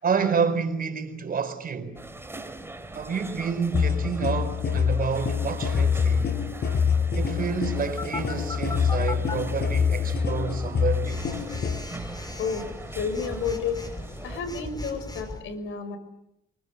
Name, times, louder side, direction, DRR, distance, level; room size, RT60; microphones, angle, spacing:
voice 1, 0.0-2.0 2.9-6.3 7.1-11.2, right 6 dB, 45° right, 4.7 m, -29 dB
sound 1, 1.9-14.4, right 2 dB, 10° right, 3.2 m, -41 dB
sound 2, 3.7-11.8, left 6 dB, 55° left, 5.8 m, -25 dB
Telephone, 8.0-9.3 11.0-15.4, left 2 dB, 20° left, 5.8 m, -37 dB
voice 2, 12.9-13.8 14.2-16.0, left 6 dB, 80° left, 5.7 m, -30 dB
26.0 x 24.0 x 8.3 m
cardioid pair, 90°, 20 cm